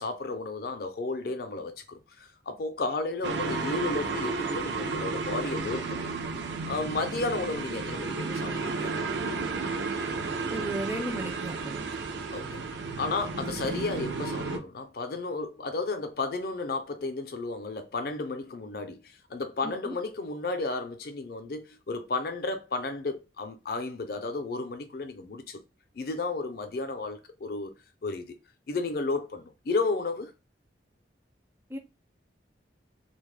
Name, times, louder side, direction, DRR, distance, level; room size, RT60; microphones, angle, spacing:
voice 1, 0.0-6.1 6.7-8.9 11.9-12.0 12.3-12.6 13.0-25.6 25.9-27.7 28.0-28.4 28.7-30.3, left 3 dB, 55° left, 0.4 m, -33 dB
sound 1, 3.2-14.6, right 4 dB, 70° right, 0.4 m, -32 dB
voice 2, 10.5-11.8 19.6-20.0 31.7-31.8, right 1 dB, 10° right, 0.4 m, -35 dB
2.3 x 2.0 x 3.2 m
head